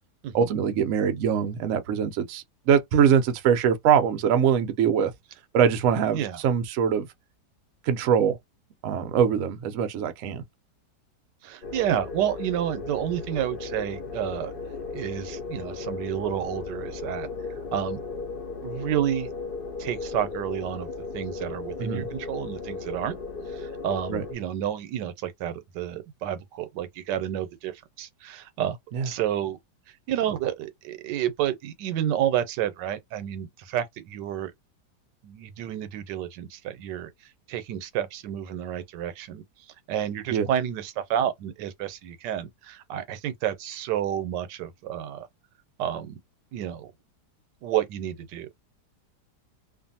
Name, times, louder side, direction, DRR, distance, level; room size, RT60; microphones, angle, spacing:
voice 1, 0.3-5.1 5.5-7.1 7.8-8.4 8.8-10.4 21.8-22.1 24.1-24.2 28.9-29.1 40.3-40.5, right 7 dB, 65° right, 0.8 m, -23 dB
voice 2, 11.4-14.5 14.9-17.3 17.7-18.0 18.6-19.3 19.8-20.9 21.1-23.1 23.5-28.8 29.0-29.6 29.9-34.5 35.2-39.4 39.9-45.3 45.8-46.2 46.5-46.9 47.6-48.6, right 10 dB, 90° right, 1.2 m, -30 dB
sound 1, 11.6-24.3, left 4 dB, 55° left, 0.6 m, -36 dB
2.5 x 2.5 x 2.6 m
omnidirectional pair, 1.8 m